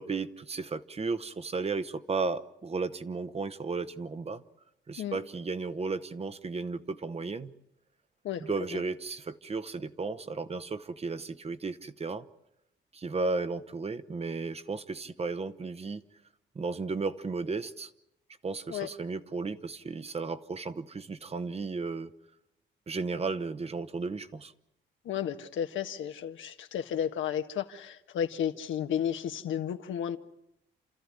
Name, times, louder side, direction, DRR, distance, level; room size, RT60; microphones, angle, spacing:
voice 1, 0.0-4.4 4.9-7.5 8.4-12.2 12.9-16.0 16.5-17.9 18.4-22.1 22.9-24.5, right 4 dB, 30° right, 1.1 m, -34 dB
voice 2, 25.0-30.2, left 9 dB, 75° left, 1.5 m, -33 dB
29.5 x 13.5 x 9.7 m
cardioid pair, 90°, 20 cm